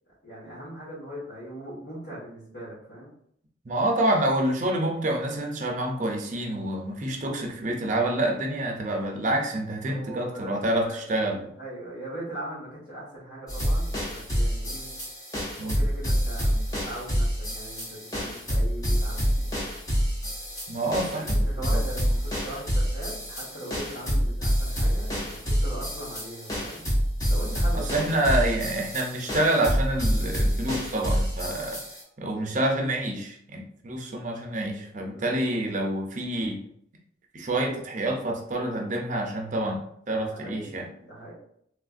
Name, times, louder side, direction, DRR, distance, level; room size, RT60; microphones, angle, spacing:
voice 1, 0.2-3.1 9.9-11.0 11.6-14.9 15.6-19.6 21.1-26.8 27.3-28.3 35.0-35.4 40.3-41.3, right 1 dB, 75° left, -9 dB, 1.2 m, -40 dB
voice 2, 3.7-11.5 15.6-15.8 20.7-21.5 21.7-21.9 27.7-31.8 32.2-36.6 37.3-40.9, right 1 dB, 40° right, 1 dB, 0.5 m, -27 dB
sound 1, 13.5-32.0, equal, 20° left, 0.6 m, -27 dB
3.3 x 2.4 x 2.4 m, 0.68 s
head